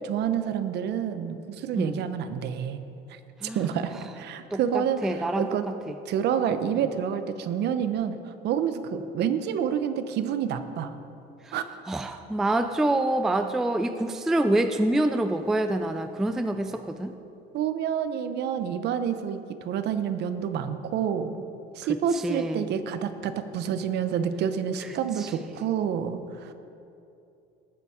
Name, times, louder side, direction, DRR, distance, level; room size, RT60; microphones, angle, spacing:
voice 1, 0.0-2.8 3.1-3.2 3.5-5.7 6.1-10.9 11.5-11.6 17.5-21.4 21.7-26.5, right 8 dB, 55° right, 10 dB, 0.8 m, -28 dB
voice 2, 4.5-5.7 11.5-11.6 11.9-17.1 22.2-22.6 25.2-25.3, right 1 dB, ahead, 8 dB, 0.3 m, -26 dB
18.5 x 7.1 x 4.9 m, 2.7 s
cardioid pair, 155°, 20 cm